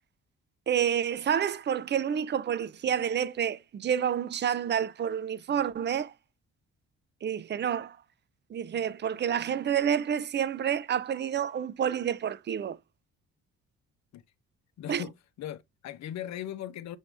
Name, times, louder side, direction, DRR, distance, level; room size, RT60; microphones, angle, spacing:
voice 1, 0.7-6.1 7.2-8.0 8.5-12.8 14.9-15.0, right 8 dB, 35° right, 0.4 m, -29 dB
voice 2, 14.8-17.0, left 11 dB, 65° left, 0.7 m, -39 dB
5.8 x 2.7 x 3.2 m
cardioid pair, 90°, 30 cm